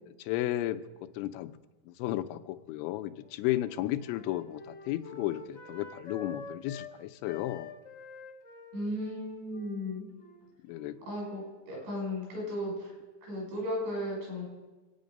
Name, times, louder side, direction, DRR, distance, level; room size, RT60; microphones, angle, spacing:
voice 1, 0.2-0.8 1.2-1.5 1.9-7.7 10.7-11.0, left 15 dB, 85° left, 11 dB, 3.1 m, -33 dB
Wind instrument woodwind instrument, 2.9-6.9 7.2-11.7, left 3 dB, 65° left, 0.7 m, -48 dB
voice 2, 8.7-10.1 11.1-12.9 13.2-14.5, left 1 dB, 70° right, -2 dB, 8.5 m, -35 dB
25.5 x 9.4 x 5.3 m, 1.2 s
omnidirectional pair, 5.3 m